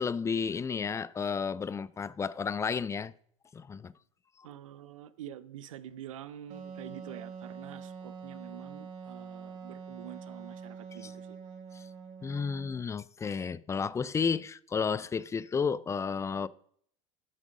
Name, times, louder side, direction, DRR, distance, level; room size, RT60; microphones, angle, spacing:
voice 1, 0.0-3.1 3.5-3.9 11.7-11.8 12.2-16.5, left 6 dB, 15° left, 0.4 m, -32 dB
voice 2, 4.4-11.4, right 11 dB, 80° right, 0.7 m, -47 dB
Wind instrument woodwind instrument, 6.5-12.9, right 5 dB, 55° right, 1.5 m, -45 dB
9.6 x 6.1 x 5.2 m
hypercardioid pair, 85°, 17 cm